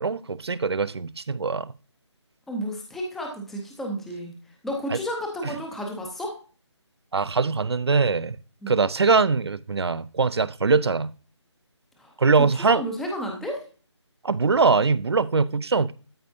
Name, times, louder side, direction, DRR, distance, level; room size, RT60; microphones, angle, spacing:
voice 1, 0.0-1.7 7.1-8.4 8.7-11.1 12.2-12.8 14.2-15.9, right 4 dB, 60° right, 0.6 m, -22 dB
voice 2, 2.5-4.3 4.6-6.3 8.6-8.8 12.0-12.2 12.7-13.6, equal, ahead, 0.7 m, -32 dB
13.0 x 5.1 x 2.7 m
figure-of-eight pair, 155°, 15 cm